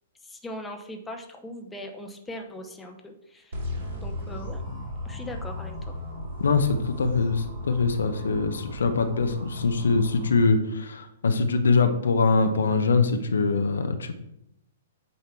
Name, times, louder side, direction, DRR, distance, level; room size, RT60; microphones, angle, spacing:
voice 1, 0.2-3.6 4.0-4.6 5.0-5.9, left 1 dB, 10° left, 3 dB, 0.7 m, -40 dB
sound 1, 3.5-10.4, left 1 dB, 55° right, 2.3 m, -36 dB
voice 2, 6.4-14.2, left 4 dB, 70° left, 7 dB, 0.6 m, -23 dB
8.2 x 2.9 x 4.5 m, 0.80 s
figure-of-eight pair, 110°, 0 cm